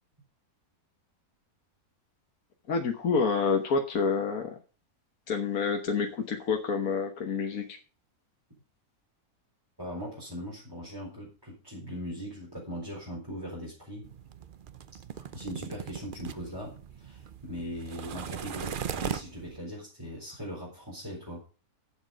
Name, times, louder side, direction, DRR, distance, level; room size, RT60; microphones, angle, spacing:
voice 1, 2.7-4.6 5.3-7.8, left 5 dB, 70° left, 3 dB, 1.6 m, -28 dB
voice 2, 9.8-14.1 15.1-21.4, equal, 15° right, -5 dB, 4.3 m, -40 dB
sound 1, 14.0-19.6, right 8 dB, 50° right, 0.6 m, -39 dB
12.0 x 7.6 x 5.1 m, 0.36 s
omnidirectional pair, 1.6 m